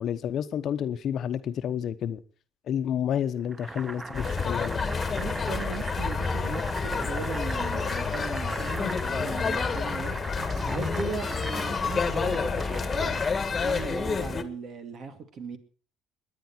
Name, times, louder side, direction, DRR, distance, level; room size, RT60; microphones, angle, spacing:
voice 1, 0.0-2.2 2.7-4.8, left 9 dB, 55° left, 11 dB, 1.0 m, -30 dB
Boiling, 3.5-14.2, right 2 dB, 20° right, 0.8 m, -39 dB
sound 1, 4.1-14.4, left 5 dB, 30° left, 1.7 m, -29 dB
voice 2, 5.1-10.1 10.7-13.2 13.6-15.6, right 5 dB, 55° right, 8 dB, 2.6 m, -38 dB
22.5 x 9.9 x 4.5 m, 0.39 s
cardioid pair, 95°, 0 cm